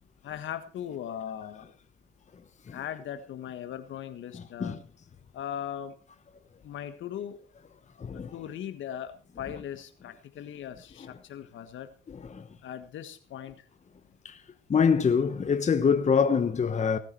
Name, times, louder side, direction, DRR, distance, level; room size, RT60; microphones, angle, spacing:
voice 1, 0.2-1.6 2.7-4.8 5.3-5.9 6.6-7.4 8.0-11.9 12.6-13.5, left 10 dB, 75° left, 1.6 m, -39 dB
voice 2, 4.3-4.8 8.0-8.3 12.1-12.4 14.2-14.4 14.7-17.0, left 6 dB, 35° left, 1.1 m, -25 dB
18.0 x 9.6 x 4.5 m
cardioid pair, 90°, 20 cm